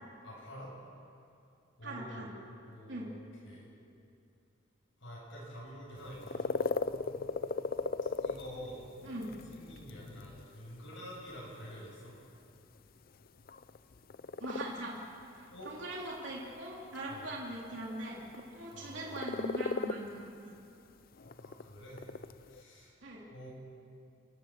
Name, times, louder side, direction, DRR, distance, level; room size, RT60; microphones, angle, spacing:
voice 1, 0.2-0.7 1.8-2.3 2.6-3.2 3.4-3.7 5.0-6.5 8.0-8.9 9.5-12.2 15.5-15.7 17.1-17.3 18.7-19.2 21.2-22.1 22.4-23.0 23.3-23.5, equal, 65° left, -5 dB, 7.9 m, -48 dB
voice 2, 1.8-2.3 2.9-3.1 9.0-9.3 14.4-15.0 15.7-20.5 23.0-23.2, right 1 dB, 65° right, -3 dB, 3.5 m, -41 dB
sound 1, 6.0-22.6, left 4 dB, 50° left, 0.6 m, -39 dB
30.0 x 16.5 x 7.7 m, 2.6 s
head